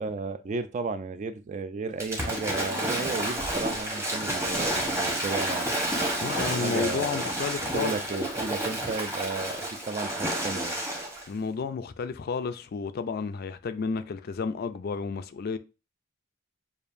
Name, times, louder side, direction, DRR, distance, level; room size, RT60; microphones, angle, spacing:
voice 1, 0.0-5.7 6.4-7.2 7.7-10.8, right 4 dB, 35° right, 0.3 m, -33 dB
Waves surf / Splash splatter, 2.0-11.3, right 1 dB, 15° right, 0.9 m, -30 dB
voice 2, 6.2-8.0 11.3-15.6, left 5 dB, 50° left, 0.4 m, -31 dB
6.8 x 2.5 x 2.5 m
head